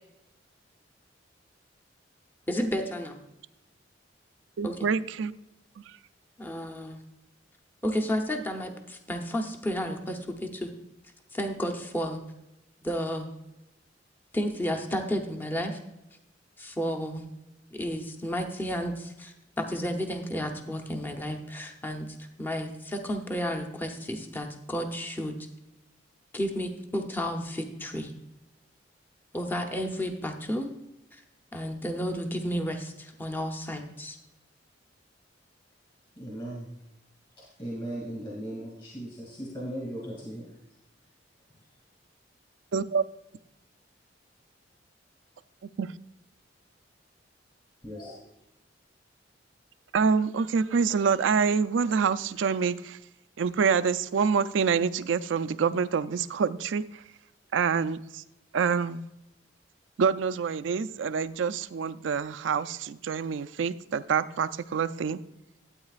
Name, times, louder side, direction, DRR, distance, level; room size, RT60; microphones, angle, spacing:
voice 1, 2.5-3.2 4.6-4.9 6.4-7.0 7.8-10.7 11.3-12.2 12.8-13.3 14.3-15.8 16.6-17.3 17.7-25.4 26.3-28.1 29.3-30.7 31.1-31.2 31.5-34.2, equal, 10° left, 3 dB, 0.8 m, -32 dB
voice 2, 4.6-5.3 42.7-43.0 45.8-45.9 49.9-53.0 53.4-57.0 57.5-58.2 58.5-59.1 60.0-65.2, right 6 dB, 85° right, 14 dB, 0.4 m, -26 dB
voice 3, 36.2-36.7 37.6-40.4 47.8-48.2, right 1 dB, 30° left, -4 dB, 2.4 m, -37 dB
12.5 x 8.6 x 2.4 m, 0.90 s
head